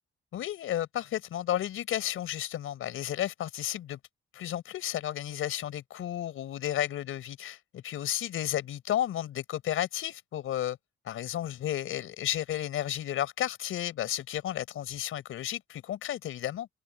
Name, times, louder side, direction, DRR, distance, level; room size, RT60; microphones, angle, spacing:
voice 1, 0.3-4.0 4.3-10.8 11.1-16.7, left 12 dB, 80° left, 5.2 m, -32 dB
cardioid pair, 175°, 21 cm